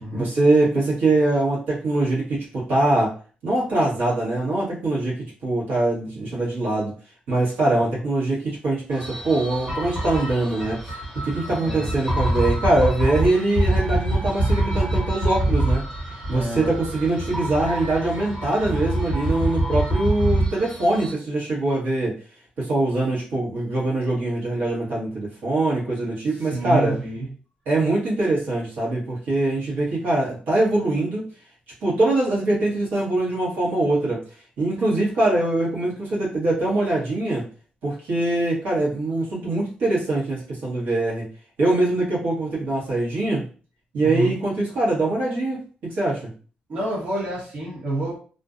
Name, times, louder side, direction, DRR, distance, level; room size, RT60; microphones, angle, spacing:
voice 1, 0.1-3.1 3.4-5.2 5.4-6.9 7.3-11.0 11.2-15.8 16.3-22.2 22.6-27.0 27.7-31.3 31.8-34.2 34.6-37.5 37.8-41.3 41.6-43.4 43.9-46.3, right 2 dB, 85° right, -6 dB, 1.1 m, -23 dB
sound 1, 8.9-21.1, right 1 dB, 20° right, 1.1 m, -25 dB
voice 2, 16.3-16.7 26.3-27.2 44.0-44.3 46.7-48.2, right 1 dB, 55° right, -6 dB, 1.0 m, -28 dB
2.4 x 2.2 x 2.4 m, 0.39 s
wide cardioid pair, 170°, 3 cm